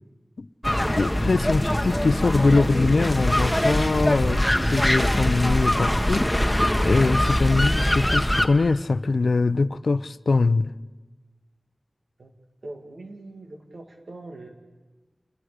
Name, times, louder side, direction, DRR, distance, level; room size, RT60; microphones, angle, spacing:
sound 1, 0.6-8.5, left 1 dB, 5° left, 1.4 m, -22 dB
voice 1, 0.8-6.3 6.8-10.7, left 3 dB, 85° left, 0.6 m, -22 dB
voice 2, 12.6-14.5, right 2 dB, 75° right, 2.4 m, -41 dB
29.0 x 21.0 x 5.0 m
wide cardioid pair, 75°, 0 cm